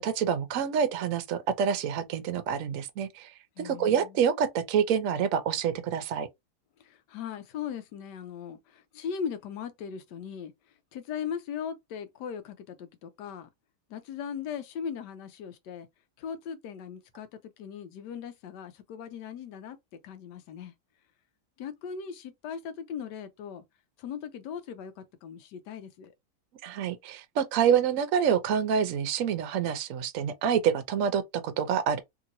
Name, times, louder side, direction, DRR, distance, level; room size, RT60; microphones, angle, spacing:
voice 1, 0.0-3.3 3.6-6.3 26.6-32.0, right 8 dB, 65° right, 0.8 m, -27 dB
voice 2, 3.6-4.3 6.8-10.5 10.9-13.5 13.9-15.9 16.2-17.3 17.6-19.8 20.0-20.7 21.6-23.6 24.0-26.1, left 7 dB, 85° left, 1.2 m, -38 dB
3.0 x 2.8 x 2.6 m
omnidirectional pair, 1.8 m